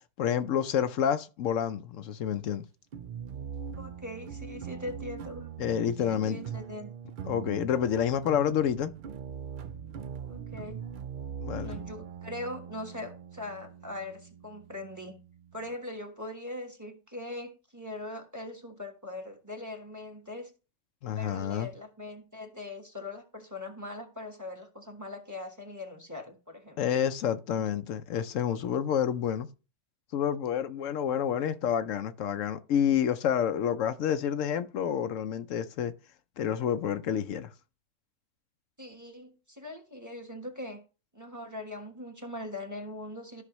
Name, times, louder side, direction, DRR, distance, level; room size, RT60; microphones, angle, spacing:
voice 1, 0.2-2.6 5.6-6.4 7.2-8.9 11.4-11.8 21.0-21.7 26.8-29.5 30.1-35.9 36.4-37.5, left 9 dB, 75° left, 1.0 m, -29 dB
sound 1, 2.9-15.7, right 7 dB, 65° right, 0.5 m, -42 dB
voice 2, 3.8-5.5 6.0-6.9 10.3-10.8 11.6-15.2 15.5-20.5 21.1-26.8 38.8-40.8 41.1-43.4, left 2 dB, 15° right, 1.3 m, -41 dB
13.0 x 5.8 x 3.1 m
omnidirectional pair, 1.3 m